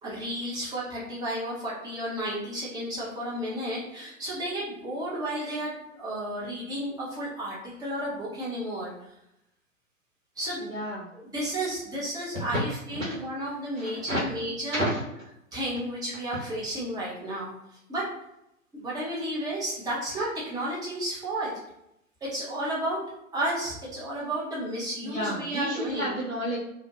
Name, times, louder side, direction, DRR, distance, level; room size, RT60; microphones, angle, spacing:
voice 1, 0.0-8.9 10.4-10.6 11.1-14.9 15.5-17.5 17.9-18.1 18.7-21.6 22.2-23.0 23.3-26.1, right 1 dB, 10° right, -7 dB, 0.7 m, -32 dB
voice 2, 10.6-11.1 12.3-12.5 12.9-13.1 13.7-14.2 14.7-15.0 25.0-26.6, equal, 90° right, -5 dB, 0.9 m, -31 dB
2.5 x 2.1 x 2.8 m, 0.81 s
figure-of-eight pair, 110°, 40 cm